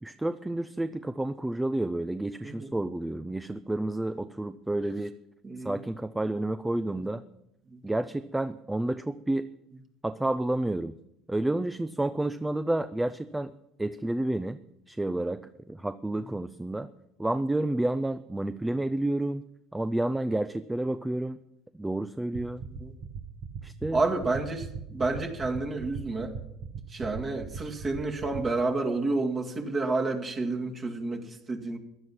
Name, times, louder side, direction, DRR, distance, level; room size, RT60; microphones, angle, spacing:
voice 1, 0.0-5.1 5.6-7.2 7.8-9.5 10.0-10.9 11.3-13.5 13.8-14.6 14.9-16.9 17.2-19.4 19.7-21.4 21.8-22.6 23.6-24.0, right 1 dB, 10° right, 12 dB, 0.6 m, -30 dB
voice 2, 5.4-5.8 6.9-7.1 7.7-7.8 22.7-22.9 23.9-26.3 26.9-31.8, right 3 dB, 35° right, 2 dB, 2.1 m, -30 dB
sound 1, 22.3-28.4, right 6 dB, 55° right, 2.0 m, -37 dB
15.5 x 11.0 x 6.0 m, 0.81 s
hypercardioid pair, 65°, 0 cm